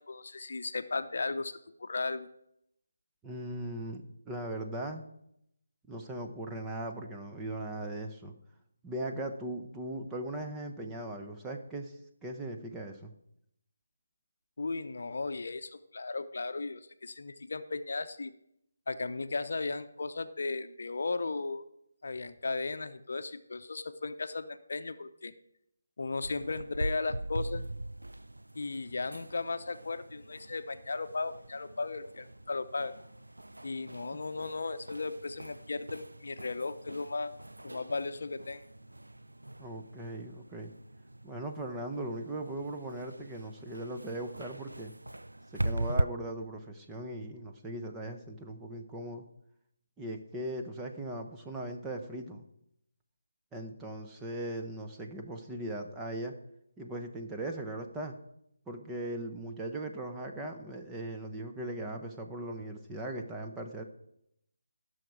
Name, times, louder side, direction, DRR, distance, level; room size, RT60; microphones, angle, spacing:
voice 1, 0.0-2.3 14.6-18.3 18.9-21.6 22.0-25.3 26.0-27.7 28.5-32.9 33.6-37.3 37.6-38.6, left 3 dB, 60° left, 10 dB, 0.7 m, -36 dB
voice 2, 3.2-5.0 5.9-8.3 8.8-13.1 39.6-40.7 41.2-44.9 45.5-49.3 50.0-52.4 53.5-56.3 56.8-58.1 58.7-63.8, right 1 dB, 10° right, 3 dB, 0.9 m, -39 dB
sound 1, 26.2-46.0, right 1 dB, 85° right, 0.4 m, -40 dB
16.5 x 6.4 x 4.7 m, 0.78 s
figure-of-eight pair, 155°, 0 cm